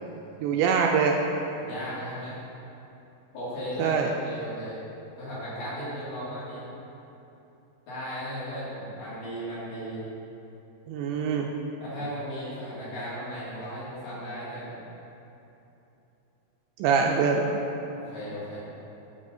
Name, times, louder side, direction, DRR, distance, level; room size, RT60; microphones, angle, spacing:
voice 1, 0.4-1.2 3.8-4.1 10.9-11.5 16.8-17.6, right 5 dB, 85° right, 1 dB, 2.6 m, -24 dB
voice 2, 1.5-2.4 3.3-4.8 5.2-6.6 7.9-10.0 11.8-14.8 17.9-18.6, equal, 60° left, -9 dB, 3.7 m, -36 dB
13.0 x 8.1 x 2.6 m, 2.9 s
omnidirectional pair, 5.4 m